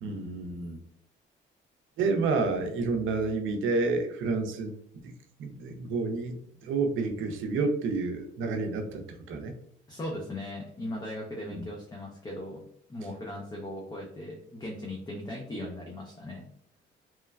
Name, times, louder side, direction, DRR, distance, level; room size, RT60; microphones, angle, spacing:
voice 1, 0.0-0.8 2.0-4.7 5.0-5.1 5.4-9.5 11.5-11.6, right 3 dB, 80° right, 5 dB, 0.5 m, -29 dB
voice 2, 9.9-12.6 12.9-16.4, left 1 dB, 20° left, -1 dB, 0.5 m, -38 dB
3.0 x 2.2 x 2.2 m, 0.70 s
cardioid pair, 90°, 20 cm